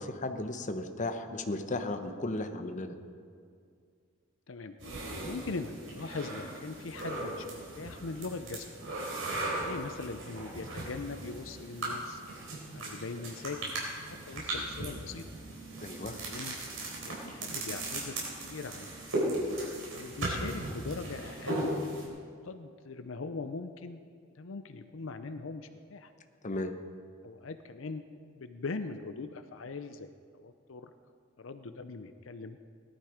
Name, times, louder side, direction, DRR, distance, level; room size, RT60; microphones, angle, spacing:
voice 1, 0.0-2.9 15.8-16.2 26.4-26.7, left 2 dB, 40° left, 7 dB, 0.9 m, -35 dB
sound 1, 4.8-22.1, right 1 dB, 80° right, 4.2 m, -37 dB
voice 2, 5.2-8.7 9.6-12.2 12.7-13.6 14.0-15.3 16.2-16.6 17.0-18.2 18.4-19.4 19.9-21.8 22.4-24.0 24.3-26.1 27.2-28.0 28.3-30.1 30.3-30.9 31.4-32.6, left 4 dB, 75° left, 9 dB, 0.6 m, -41 dB
18.0 x 11.5 x 5.0 m, 2.2 s
head